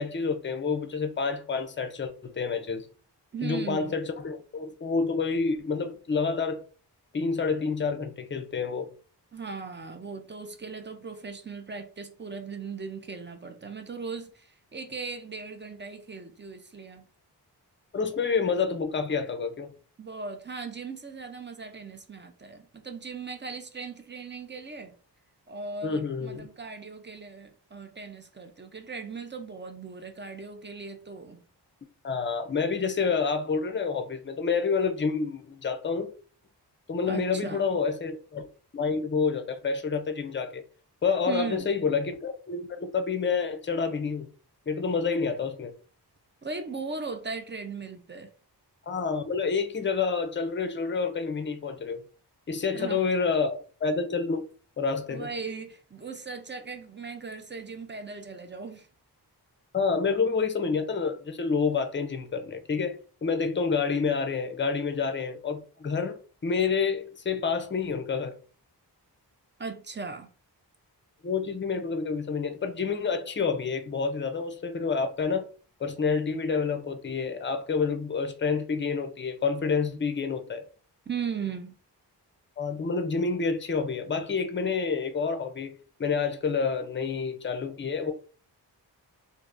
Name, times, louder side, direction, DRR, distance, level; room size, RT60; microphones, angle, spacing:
voice 1, 0.0-2.9 3.4-6.6 7.1-8.9 17.9-19.7 25.8-26.5 32.0-36.1 36.9-38.5 38.7-40.6 41.0-44.3 44.7-45.7 48.9-52.0 52.5-54.5 54.8-55.3 59.7-68.3 71.2-75.5 75.8-80.6 82.6-85.7 86.0-88.1, left 5 dB, 30° left, 0.5 m, -28 dB
voice 2, 3.3-4.0 9.3-17.0 20.0-24.9 25.5-31.4 37.1-37.6 41.3-41.7 46.4-48.3 52.7-53.0 55.1-58.9 69.6-70.3 81.1-81.7, right 5 dB, 25° right, 0.5 m, -38 dB
3.3 x 2.6 x 2.5 m
wide cardioid pair, 110°, 42 cm